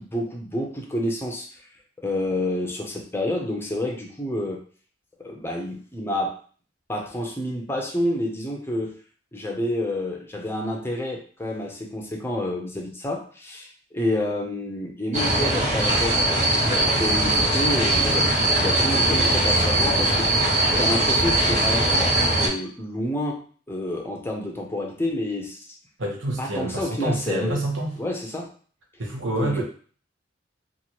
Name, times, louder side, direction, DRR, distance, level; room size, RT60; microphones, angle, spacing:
voice 1, 0.0-1.7 2.0-4.6 5.2-6.3 6.9-8.9 9.3-18.3 18.6-20.3 20.8-23.4 23.7-25.6 26.4-27.6 28.0-28.5 29.4-29.6, left 1 dB, 10° left, 0 dB, 0.5 m, -29 dB
sound 1, 15.1-22.5, right 1 dB, 35° right, 0.9 m, -21 dB
voice 2, 26.0-28.0 29.0-29.6, right 1 dB, 80° right, -1 dB, 0.9 m, -27 dB
2.8 x 2.5 x 2.8 m, 0.43 s
head